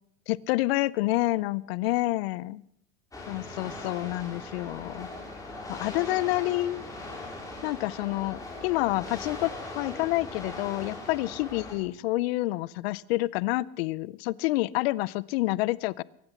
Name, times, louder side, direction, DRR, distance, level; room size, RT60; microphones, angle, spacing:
voice 1, 0.3-2.6 3.3-5.1 5.7-6.8 7.6-9.5 9.8-16.0, left 19 dB, 65° left, 23 dB, 0.6 m, -28 dB
sound 1, 3.1-11.7, left 2 dB, 10° left, 4.8 m, -40 dB
23.5 x 9.9 x 5.9 m, 0.75 s
supercardioid pair, 120°, 33 cm